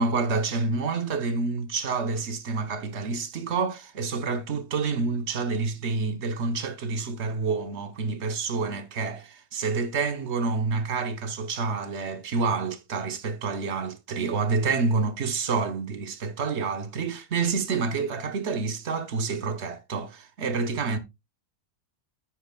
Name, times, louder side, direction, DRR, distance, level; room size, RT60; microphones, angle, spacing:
voice 1, 0.0-21.0, right 4 dB, 55° right, 1.1 m, -28 dB
9.6 x 8.9 x 2.2 m
omnidirectional pair, 1.5 m